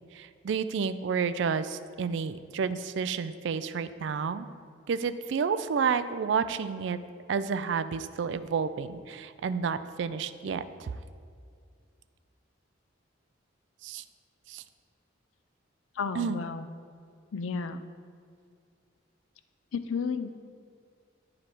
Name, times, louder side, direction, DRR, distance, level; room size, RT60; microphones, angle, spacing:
voice 1, 0.1-4.5 4.9-7.0 7.3-10.9 13.8-14.0 14.5-14.6 16.1-16.4, right 6 dB, 65° right, 12 dB, 0.3 m, -30 dB
voice 2, 16.0-16.7 17.3-17.8 19.7-20.3, left 5 dB, 80° left, 10 dB, 0.4 m, -32 dB
8.4 x 5.0 x 4.5 m, 2.2 s
head